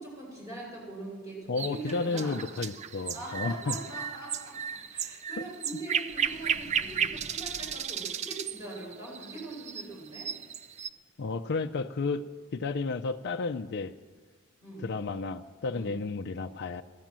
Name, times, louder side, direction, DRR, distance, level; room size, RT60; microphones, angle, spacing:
voice 1, 0.0-2.4 3.1-4.6 4.9-10.3 14.6-14.9 15.7-15.9, right 2 dB, 15° right, -4 dB, 5.4 m, -42 dB
voice 2, 1.5-3.8 5.4-5.5 11.2-12.2 12.5-13.9 14.8-16.8, left 4 dB, 55° left, 7 dB, 0.5 m, -32 dB
sound 1, 1.6-10.9, right 7 dB, 35° right, 0.4 m, -34 dB
Water / Sink (filling or washing), 6.1-7.8, equal, 60° right, 6.3 m, -49 dB
15.0 x 10.5 x 7.5 m, 1.4 s
head